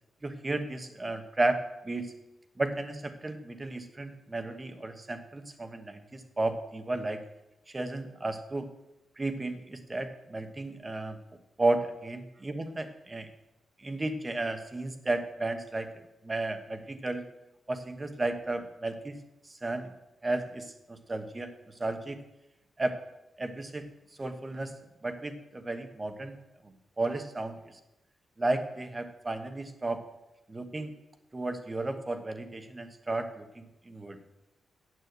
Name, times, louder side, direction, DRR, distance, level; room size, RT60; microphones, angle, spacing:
voice 1, 0.2-2.1 2.6-7.2 7.7-8.7 9.2-11.2 11.6-13.3 13.8-15.9 16.2-17.2 17.7-19.2 19.6-19.9 20.2-21.5 21.8-22.2 22.8-23.0 23.4-23.8 24.2-24.7 25.0-26.4 27.0-27.5 28.4-30.0 30.5-30.9 31.3-34.2, right 2 dB, 20° right, 8 dB, 1.1 m, -33 dB
9.4 x 8.4 x 8.1 m, 0.95 s
wide cardioid pair, 150°, 0 cm